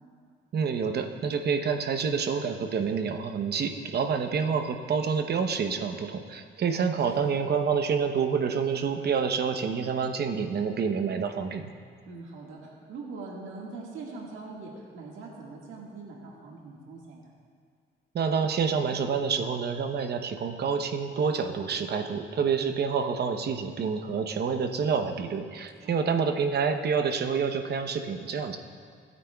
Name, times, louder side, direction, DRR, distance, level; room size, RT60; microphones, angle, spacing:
voice 1, 0.5-11.6 18.1-28.6, right 6 dB, 55° right, 6 dB, 0.9 m, -28 dB
voice 2, 12.1-17.3 25.8-26.1, right 3 dB, 85° right, -2 dB, 1.8 m, -42 dB
19.0 x 9.4 x 2.3 m, 2.1 s
cardioid pair, 90°, 20 cm